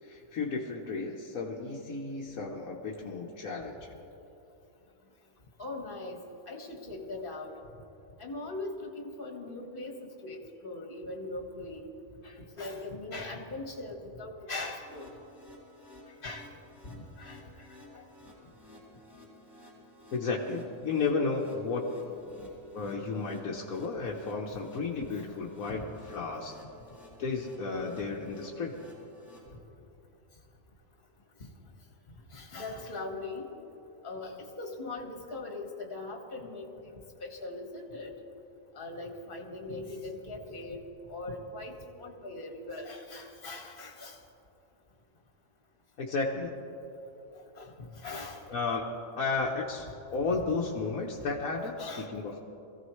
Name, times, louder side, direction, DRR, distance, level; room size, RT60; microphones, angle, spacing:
voice 1, 0.0-3.9 20.1-21.8 22.7-26.5 27.2-28.8 46.0-46.5 48.5-52.4, left 4 dB, 90° left, -3 dB, 1.5 m, -33 dB
voice 2, 5.6-7.5 8.2-11.9 12.2-15.1 16.2-16.5 16.8-17.7 17.9-18.1 25.7-25.8 28.2-28.3 31.4-31.5 32.3-33.5 34.0-38.1 38.7-40.8 41.1-44.2 47.3-48.4 51.8-52.1, left 2 dB, 40° left, 2 dB, 1.7 m, -40 dB
sound 1, 14.6-29.4, left 1 dB, ahead, 3.5 m, -54 dB
23.0 x 15.5 x 3.2 m, 2.9 s
omnidirectional pair, 1.4 m